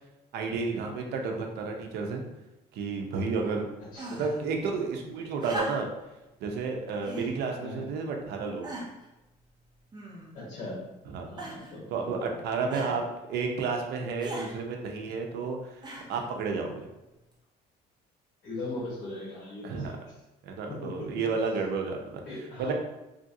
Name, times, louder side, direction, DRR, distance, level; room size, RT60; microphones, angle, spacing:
voice 1, 0.3-2.2 2.7-3.7 4.1-5.9 6.4-8.7 11.1-11.3 11.9-13.0 13.3-15.8 16.1-16.9 19.6-19.9 20.4-22.2 22.6-22.7, right 4 dB, 75° right, 3 dB, 0.6 m, -31 dB
voice 2, 3.9-4.3 4.6-4.7 7.6-7.9 10.3-10.8 11.2-12.3 12.7-12.9 18.4-19.9 20.7-21.3 22.2-22.7, left 2 dB, 55° left, -8 dB, 1.3 m, -39 dB
sound 1, 3.9-4.4 5.4-6.1 7.0-7.3 8.1-8.2 8.6-9.1 9.9-10.5 11.4-11.8 12.7-13.0 14.2-14.5 15.8-16.3 17.3-17.4, right 1 dB, 25° right, 0.7 m, -38 dB
3.2 x 2.5 x 2.6 m, 0.98 s
cardioid pair, 110°, 17 cm